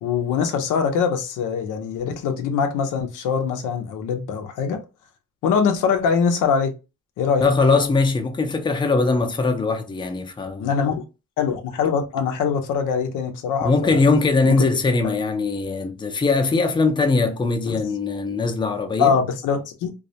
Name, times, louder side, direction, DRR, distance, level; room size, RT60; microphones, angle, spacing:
voice 1, 0.0-4.8 5.4-6.7 7.2-7.5 10.6-11.0 11.4-14.0 14.5-14.7 17.7-17.8 19.0-19.9, left 6 dB, 90° left, 0.6 m, -23 dB
voice 2, 7.4-10.7 13.6-19.1, left 3 dB, 15° left, 0.5 m, -21 dB
2.3 x 2.1 x 2.7 m
cardioid pair, 90°, 30 cm